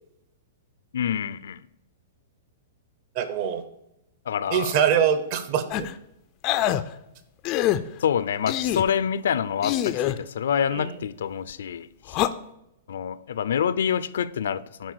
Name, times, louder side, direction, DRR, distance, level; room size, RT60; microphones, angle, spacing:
voice 1, 0.9-1.6 4.3-4.7 8.0-12.2 12.9-14.9, left 8 dB, 75° left, 0.5 m, -27 dB
voice 2, 3.1-3.6 4.5-5.9 10.7-11.0, right 8 dB, 35° right, 0.9 m, -24 dB
sound 1, 5.7-5.9 6.4-6.8 7.4-7.8 8.5-8.9 9.6-10.2 12.1-12.3, left 13 dB, 25° left, 0.4 m, -24 dB
10.5 x 4.3 x 6.7 m
hypercardioid pair, 175°, 0 cm